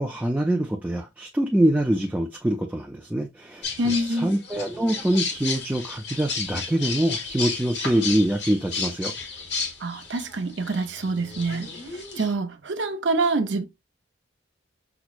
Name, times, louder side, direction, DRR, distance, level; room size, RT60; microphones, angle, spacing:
voice 1, 0.0-9.1, right 1 dB, 10° right, 0.3 m, -24 dB
sound 1, 3.6-12.3, left 4 dB, 60° left, 1.0 m, -33 dB
voice 2, 3.8-4.3 9.8-11.7 12.2-13.6, right 2 dB, 65° right, 0.7 m, -26 dB
5.8 x 2.0 x 2.4 m
head